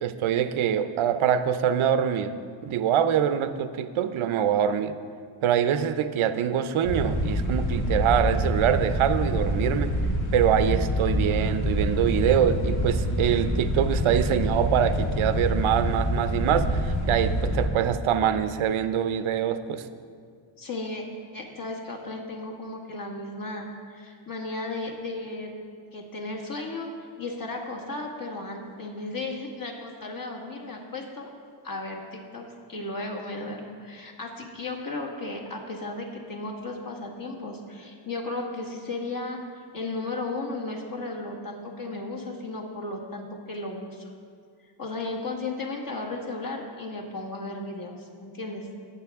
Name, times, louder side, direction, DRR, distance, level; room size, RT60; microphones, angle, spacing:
voice 1, 0.0-2.3 2.6-5.0 5.4-9.9 10.3-19.9, right 9 dB, 85° right, 11 dB, 0.7 m, -24 dB
sound 1, 6.9-17.7, equal, 90° left, 1.6 m, -26 dB
voice 2, 20.6-21.0 21.3-25.5 25.9-26.9 27.2-31.3 31.6-44.1 44.8-48.7, left 2 dB, 45° left, 0 dB, 1.7 m, -35 dB
18.5 x 7.2 x 3.5 m, 2.2 s
wide cardioid pair, 115°, 48 cm